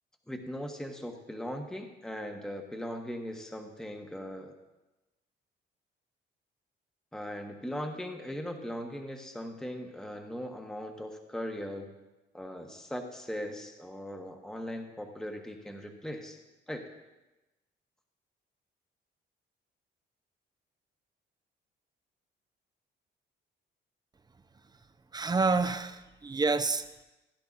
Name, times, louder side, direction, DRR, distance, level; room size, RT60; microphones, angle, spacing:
voice 1, 0.3-4.5 7.1-11.9 12.3-16.4 16.7-16.8, equal, 5° left, 3 dB, 1.1 m, -39 dB
voice 2, 25.1-27.0, right 3 dB, 20° right, 10 dB, 0.6 m, -28 dB
16.0 x 9.7 x 2.5 m, 1.0 s
cardioid pair, 90°, 20 cm